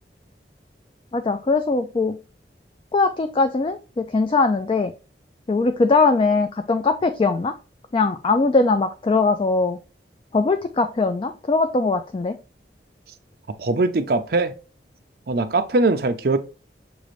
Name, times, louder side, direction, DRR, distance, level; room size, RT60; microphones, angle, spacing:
voice 1, 1.1-2.2 2.9-4.9 5.5-7.5 7.9-9.8 10.3-12.4, left 3 dB, 30° left, 0.3 m, -21 dB
voice 2, 13.6-14.5 15.3-16.4, right 2 dB, 60° right, 0.5 m, -21 dB
6.2 x 2.5 x 3.1 m
head